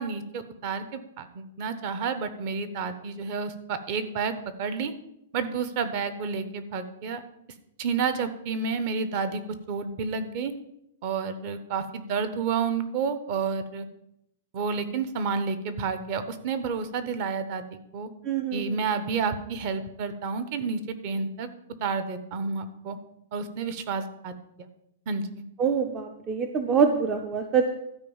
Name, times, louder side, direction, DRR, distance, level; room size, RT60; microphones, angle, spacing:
voice 1, 0.0-4.9 5.3-7.2 7.8-10.5 11.0-13.9 14.5-18.1 18.5-21.5 21.8-23.0 23.3-24.7 25.1-25.4, right 5 dB, 35° right, 11 dB, 0.9 m, -30 dB
voice 2, 18.3-18.7 25.6-27.7, right 6 dB, 20° right, 6 dB, 0.6 m, -25 dB
12.5 x 4.8 x 7.2 m, 0.80 s
hypercardioid pair, 165°, 0 cm